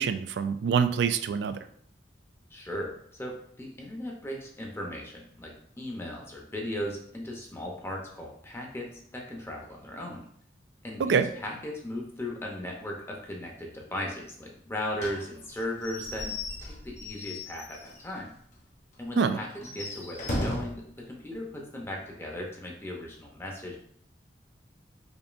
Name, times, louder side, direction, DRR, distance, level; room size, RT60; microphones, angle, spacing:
voice 1, 0.0-1.6 11.0-11.3 19.2-19.4, right 6 dB, 70° right, 10 dB, 0.3 m, -25 dB
voice 2, 2.5-10.3 10.8-18.3 19.0-23.8, left 1 dB, 15° left, -1 dB, 0.6 m, -37 dB
Slam / Squeak / Wood, 15.0-18.2 18.5-18.6 18.9-19.0 19.5-20.8, left 1 dB, 40° left, 0.8 m, -36 dB
5.0 x 2.6 x 2.5 m, 0.64 s
head